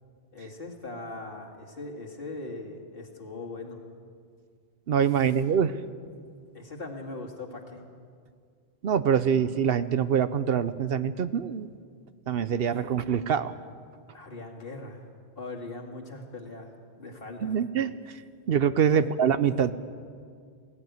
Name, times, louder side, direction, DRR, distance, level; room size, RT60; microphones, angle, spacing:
voice 1, 0.3-3.8 6.5-7.8 14.1-15.0 15.4-16.7 17.0-17.6 18.9-19.0, left 2 dB, 60° left, 1 dB, 2.3 m, -40 dB
voice 2, 4.9-5.7 8.8-11.7 12.3-13.5 17.4-17.9 18.5-19.7, right 8 dB, 65° right, 13 dB, 0.9 m, -24 dB
17.5 x 16.5 x 9.4 m, 2.2 s
omnidirectional pair, 1.1 m